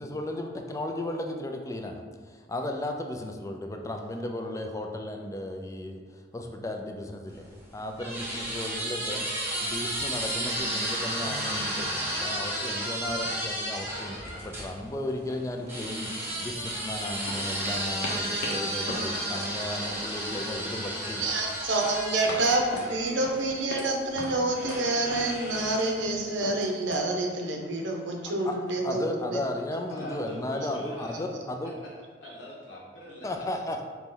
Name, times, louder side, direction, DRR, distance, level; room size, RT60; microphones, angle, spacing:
voice 1, 0.0-21.3 28.4-28.5 28.8-31.7 33.2-33.8, left 1 dB, 15° left, 4 dB, 0.3 m, -35 dB
sound 1, 7.3-14.7 15.7-23.6 24.5-26.1, right 1 dB, 15° right, 0.9 m, -33 dB
sound 2, 13.2-13.5 13.8-14.0 14.3-15.1 15.4-16.8 17.3-20.8 21.0-21.4 21.8-23.9 24.2-27.0, left 1 dB, 65° left, 0.8 m, -40 dB
voice 2, 21.2-29.0 29.3-29.4 30.6-30.8, right 2 dB, 70° right, 1 dB, 0.7 m, -28 dB
voice 3, 29.9-31.2 32.2-33.5, left 1 dB, 80° left, -4 dB, 1.2 m, -42 dB
4.0 x 3.0 x 3.7 m, 1.5 s
head